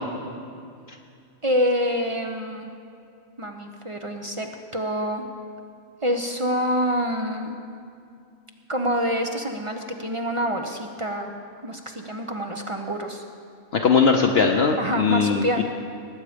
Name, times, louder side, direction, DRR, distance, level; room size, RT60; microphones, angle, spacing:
voice 1, 1.4-2.7 3.4-5.2 6.0-7.6 8.7-11.3 11.6-13.2 14.8-15.6, equal, 35° right, 4 dB, 0.6 m, -26 dB
voice 2, 13.7-15.6, left 5 dB, 60° left, 2 dB, 0.9 m, -20 dB
18.5 x 8.3 x 5.1 m, 2.4 s
omnidirectional pair, 1.3 m